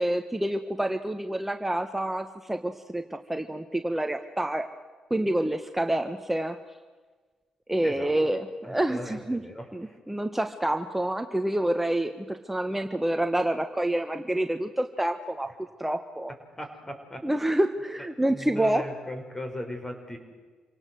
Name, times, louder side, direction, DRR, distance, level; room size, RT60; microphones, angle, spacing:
voice 1, 0.0-4.7 5.1-6.6 7.7-9.4 9.7-16.3 17.2-18.9, right 1 dB, 10° right, 7 dB, 1.5 m, -28 dB
voice 2, 8.6-10.0 16.6-17.2 18.3-20.2, left 1 dB, 20° left, 5 dB, 5.7 m, -38 dB
27.5 x 18.0 x 7.9 m, 1.4 s
supercardioid pair, 50°, 2 cm